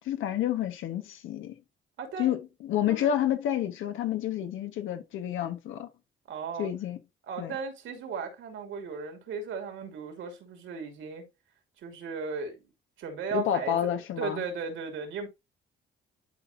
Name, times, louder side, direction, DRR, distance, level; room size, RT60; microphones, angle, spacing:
voice 1, 0.0-1.6 2.2-5.9 6.6-7.0 7.4-7.5 13.3-14.4, left 11 dB, 80° left, 1.4 m, -29 dB
voice 2, 2.0-2.4 2.9-3.1 6.3-6.7 7.3-11.2 11.8-12.6 13.0-13.9 14.2-15.3, right 5 dB, 75° right, 2.7 m, -36 dB
11.0 x 4.5 x 2.7 m
cardioid pair, 90°, 20 cm